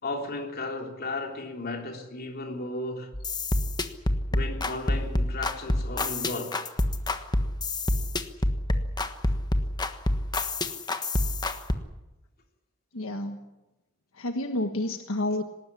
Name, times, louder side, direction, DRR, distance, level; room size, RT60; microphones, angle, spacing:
voice 1, 0.0-3.1 4.3-6.6, left 2 dB, 50° left, 3.5 m, -34 dB
sound 1, 3.1-11.8, left 1 dB, 20° left, 1.4 m, -27 dB
voice 2, 12.9-13.5 14.1-15.4, left 1 dB, 80° left, 1.4 m, -30 dB
19.0 x 19.0 x 9.9 m
head